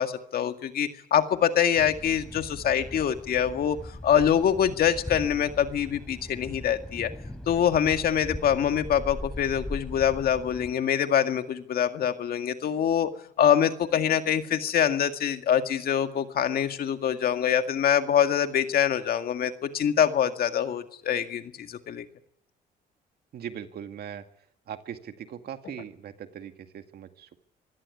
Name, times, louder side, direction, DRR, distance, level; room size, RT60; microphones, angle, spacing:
voice 1, 0.0-7.1 7.5-13.1 13.4-22.0, left 9 dB, 60° left, 7 dB, 2.0 m, -25 dB
Thunder, 1.8-10.7, left 1 dB, 5° left, 3.5 m, -40 dB
voice 2, 23.3-24.2 24.7-27.4, right 9 dB, 65° right, 7 dB, 2.1 m, -40 dB
24.0 x 16.5 x 9.8 m, 0.68 s
cardioid pair, 100°, 18 cm